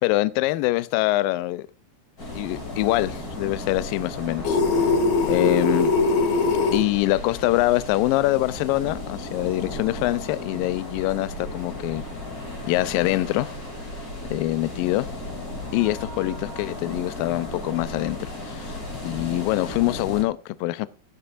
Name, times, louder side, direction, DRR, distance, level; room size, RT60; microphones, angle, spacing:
voice 1, 0.0-1.7 2.3-4.6 5.3-5.9 6.7-12.0 12.6-13.5 14.3-15.1 15.7-18.8 19.0-20.9, left 18 dB, 80° left, 2.0 m, -24 dB
sound 1, 2.2-20.2, left 1 dB, 25° left, 2.5 m, -35 dB
sound 2, 4.4-6.8, left 4 dB, 60° left, 2.1 m, -21 dB
12.5 x 10.5 x 2.5 m
omnidirectional pair, 4.6 m